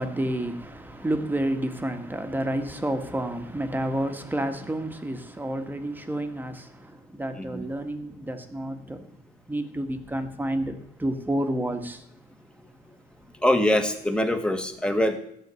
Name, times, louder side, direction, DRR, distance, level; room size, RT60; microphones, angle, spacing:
voice 1, 0.0-9.1 9.5-12.0, right 1 dB, 10° right, 1.7 m, -30 dB
voice 2, 7.3-7.7 13.4-15.2, left 1 dB, 5° left, 1.8 m, -23 dB
14.5 x 6.5 x 9.6 m
cardioid pair, 110°, 17 cm